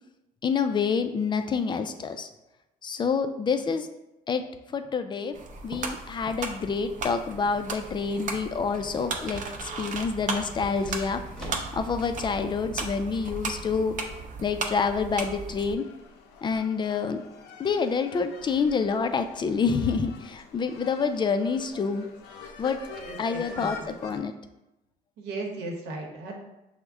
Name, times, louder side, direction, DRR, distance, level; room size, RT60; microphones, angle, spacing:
voice 1, 0.4-2.3 2.8-3.9 4.3-4.4 4.7-5.4 5.6-11.2 11.5-14.0 14.4-15.9 16.4-17.2 17.6-22.1 22.6-22.8 23.2-24.3, left 5 dB, 25° left, 8 dB, 0.3 m, -27 dB
sound 1, 5.3-15.7, right 4 dB, 50° right, 0.6 m, -36 dB
sound 2, 7.5-12.3 12.6-12.7, equal, 5° left, 0.9 m, -46 dB
sound 3, 15.8-24.2, left 5 dB, 85° left, 0.5 m, -46 dB
voice 2, 22.9-23.9 25.2-26.4, right 2 dB, 85° right, 0 dB, 1.0 m, -36 dB
5.9 x 2.1 x 3.5 m, 0.95 s
cardioid pair, 110°, 17 cm